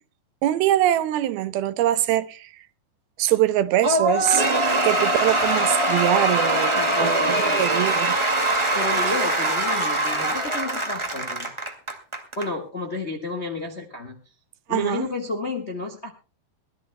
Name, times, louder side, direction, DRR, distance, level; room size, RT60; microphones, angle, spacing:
voice 1, 0.4-2.5 3.2-4.5 4.8-8.1 14.7-15.1, right 13 dB, 85° right, 2.8 m, -23 dB
Cheering / Applause / Crowd, 3.8-12.5, right 1 dB, 15° right, 0.9 m, -22 dB
voice 2, 6.8-7.8 8.7-11.5 12.4-14.2 14.7-16.1, left 2 dB, 75° left, 0.6 m, -31 dB
22.5 x 16.5 x 2.2 m
omnidirectional pair, 4.3 m